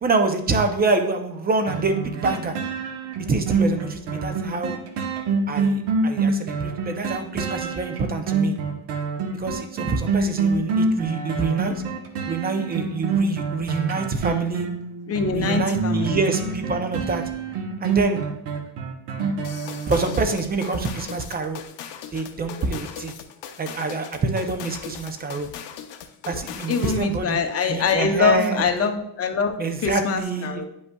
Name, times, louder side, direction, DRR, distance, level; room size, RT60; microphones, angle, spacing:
voice 1, 0.0-2.6 3.2-4.8 5.5-8.6 9.4-11.8 12.3-14.7 15.3-17.3 17.8-18.2 19.9-21.6 22.1-23.1 23.6-25.5 26.3-27.4 27.7-28.7 29.6-30.6, right 3 dB, 20° right, 6 dB, 0.5 m, -26 dB
sound 1, 1.7-20.4 20.8-20.9, right 4 dB, 60° right, 1.1 m, -26 dB
voice 2, 15.1-16.2 26.7-30.6, left 5 dB, 30° left, 6 dB, 0.7 m, -24 dB
sound 2, 19.4-27.1, left 9 dB, 65° left, 0.8 m, -39 dB
9.6 x 5.3 x 2.3 m, 0.76 s
cardioid pair, 140°, 47 cm